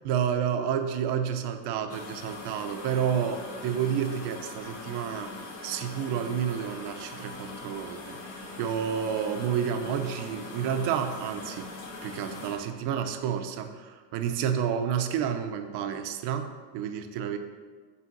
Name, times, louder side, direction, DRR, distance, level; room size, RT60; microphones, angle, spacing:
voice 1, 0.0-5.3 5.6-11.7 12.0-17.4, right 8 dB, 70° right, 6 dB, 0.7 m, -30 dB
sound 1, 1.9-12.6, left 3 dB, 85° left, 1.6 m, -42 dB
5.5 x 4.1 x 5.9 m, 1.5 s
supercardioid pair, 100°, 42 cm